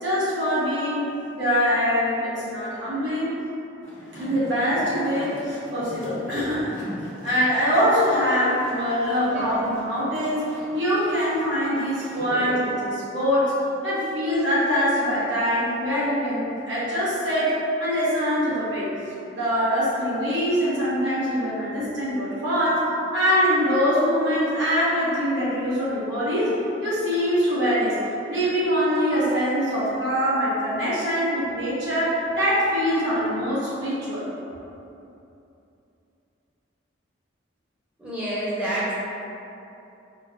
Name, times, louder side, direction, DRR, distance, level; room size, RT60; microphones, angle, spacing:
voice 1, 0.0-3.3 4.2-6.7 7.2-10.4 10.7-13.5 13.8-18.9 19.3-22.8 23.1-26.5 26.8-28.0 28.3-34.3, equal, 65° right, -9 dB, 1.2 m, -23 dB
sound 1, 3.8-12.7, equal, 80° left, 1.1 m, -40 dB
voice 2, 38.0-38.9, right 1 dB, 5° right, -11 dB, 1.0 m, -28 dB
4.4 x 2.4 x 2.8 m, 2.8 s
head